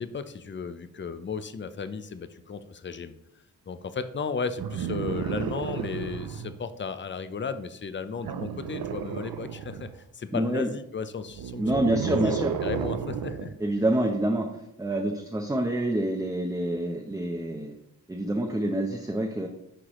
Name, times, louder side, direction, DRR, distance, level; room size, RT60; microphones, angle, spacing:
voice 1, 0.0-3.1 3.7-13.5, left 5 dB, 35° left, 11 dB, 0.6 m, -34 dB
sound 1, 4.6-6.6 8.2-10.0 11.3-13.6 14.9-15.0, right 8 dB, 85° right, 0.5 m, -32 dB
voice 2, 10.3-10.7 11.6-12.5 13.6-14.5 14.8-17.7 18.1-19.5, right 1 dB, 10° right, 2 dB, 0.7 m, -27 dB
9.9 x 4.8 x 3.1 m, 0.81 s
cardioid pair, 80°, 34 cm